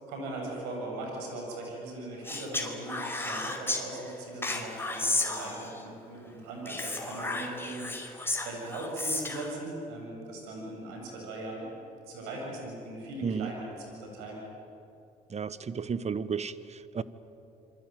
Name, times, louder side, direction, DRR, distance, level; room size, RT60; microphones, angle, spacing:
voice 1, 0.1-11.7 12.1-14.4, right 2 dB, 85° right, -1 dB, 7.9 m, -39 dB
Speech, 2.2-3.8 4.4-5.8 6.6-9.5, left 2 dB, 10° left, 4.9 m, -33 dB
voice 2, 15.3-17.0, right 6 dB, 40° right, 15 dB, 1.4 m, -33 dB
27.0 x 23.0 x 9.4 m, 2.8 s
supercardioid pair, 60°, 18 cm